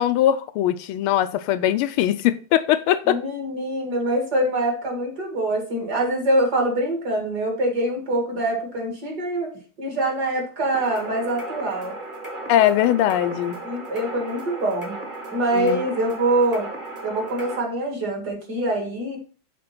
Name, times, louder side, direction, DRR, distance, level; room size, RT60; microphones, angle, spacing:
voice 1, 0.0-3.2 12.5-13.6 15.5-15.8, left 12 dB, 80° left, 1.4 m, -20 dB
voice 2, 3.1-9.5 9.8-11.9 13.6-15.0 15.3-16.7 17.0-19.2, right 1 dB, 50° right, 2.4 m, -24 dB
sound 1, 10.7-17.6, right 2 dB, 25° right, 1.3 m, -35 dB
7.7 x 3.4 x 5.8 m
omnidirectional pair, 2.4 m